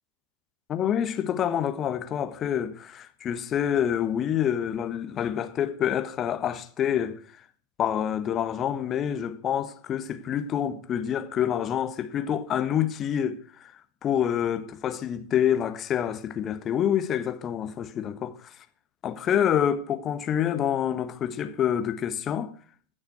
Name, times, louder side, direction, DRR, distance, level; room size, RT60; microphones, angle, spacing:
voice 1, 0.7-7.2 7.8-13.7 14.0-18.5 19.0-22.5, left 9 dB, 30° left, 1.4 m, -27 dB
15.5 x 6.5 x 8.0 m
figure-of-eight pair, 90°, 0 cm